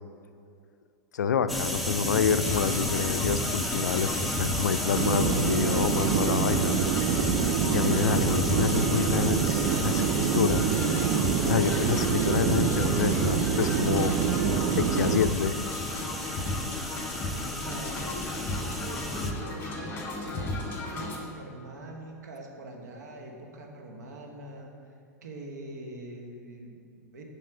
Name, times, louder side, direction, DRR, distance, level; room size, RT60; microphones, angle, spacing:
voice 1, 1.1-6.9 7.7-10.7 11.5-14.2 14.8-15.5, left 7 dB, 75° left, 11 dB, 0.4 m, -27 dB
sound 1, 1.5-19.3, equal, ahead, 0.6 m, -33 dB
sound 2, 2.4-21.2, left 2 dB, 25° left, 1.4 m, -35 dB
sound 3, 4.9-15.2, right 8 dB, 45° right, 0.4 m, -26 dB
voice 2, 17.5-24.7 25.2-27.2, right 1 dB, 70° right, 1 dB, 1.1 m, -43 dB
7.5 x 4.8 x 4.9 m, 2.4 s
figure-of-eight pair, 90°, 9 cm